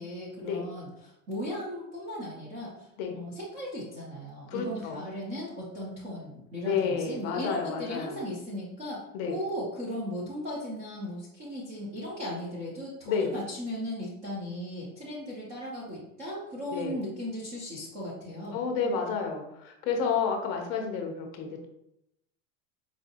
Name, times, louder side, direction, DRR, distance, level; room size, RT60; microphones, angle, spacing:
voice 1, 0.0-2.9 3.1-18.6, equal, 20° right, -6 dB, 0.3 m, -37 dB
voice 2, 4.5-5.0 6.6-8.2 9.1-9.4 13.0-13.3 16.7-17.0 18.5-21.6, left 5 dB, 40° left, 3 dB, 0.6 m, -30 dB
4.7 x 2.6 x 2.5 m, 0.83 s
supercardioid pair, 160°, 40 cm